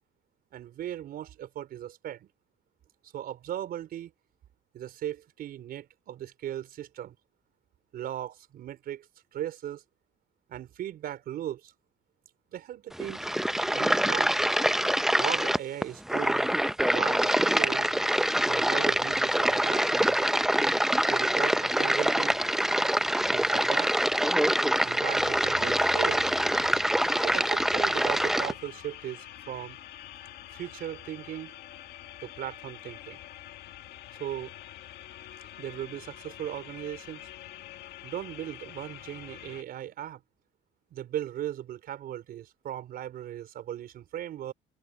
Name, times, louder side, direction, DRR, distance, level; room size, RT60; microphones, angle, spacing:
voice 1, 0.5-2.3 3.1-4.1 4.7-7.2 7.9-9.1 9.3-9.8 10.5-11.7 12.5-13.3 13.7-14.3 15.2-16.5 16.8-17.9 18.5-20.3 21.0-22.4 23.3-24.0 24.8-26.3 27.2-29.8 30.5-31.5 32.2-33.2 34.2-34.5 35.6-37.3 38.0-40.2 40.9-44.5, right 11 dB, 65° right, 4.7 m, -37 dB
sound 1, 12.9-28.5, right 1 dB, ahead, 0.5 m, -25 dB
sound 2, 25.1-39.6, left 13 dB, 75° left, 1.9 m, -46 dB
cardioid pair, 110°, 17 cm